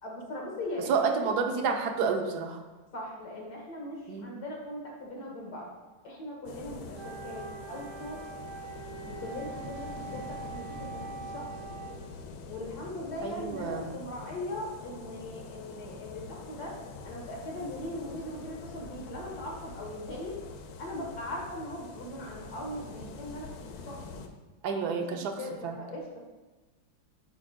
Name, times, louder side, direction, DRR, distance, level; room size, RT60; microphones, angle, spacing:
voice 1, 0.0-0.9 1.2-1.7 2.9-5.7 6.0-8.2 9.0-11.5 12.5-16.8 17.0-20.4 20.8-23.5 23.8-24.2 24.7-24.9 25.1-26.2, left 1 dB, 55° left, -2 dB, 1.7 m, -40 dB
voice 2, 0.9-2.6 4.1-4.3 13.2-13.9 24.6-25.8, right 5 dB, 70° right, 4 dB, 1.1 m, -30 dB
sound 1, 6.5-24.3, left 4 dB, 85° left, 1.4 m, -45 dB
Wind instrument woodwind instrument, 6.9-12.1, right 5 dB, 85° right, 0.7 m, -43 dB
9.8 x 4.8 x 2.2 m, 1.2 s
omnidirectional pair, 2.1 m